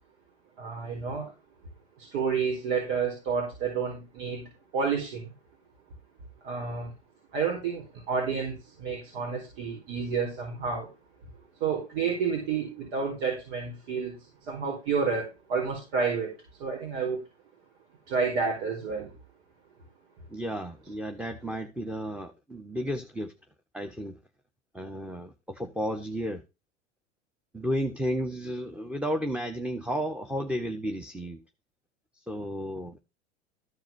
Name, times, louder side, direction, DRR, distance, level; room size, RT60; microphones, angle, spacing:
voice 1, 0.6-1.3 2.0-5.3 6.4-6.9 7.3-10.9 11.6-16.3 16.6-17.2 18.1-19.1, right 5 dB, 65° right, 4.5 m, -30 dB
voice 2, 20.3-23.3 23.7-24.2 24.7-26.4 27.5-31.4 32.1-33.0, equal, 5° right, 1.3 m, -33 dB
14.0 x 4.8 x 6.0 m
hypercardioid pair, 90°, 33 cm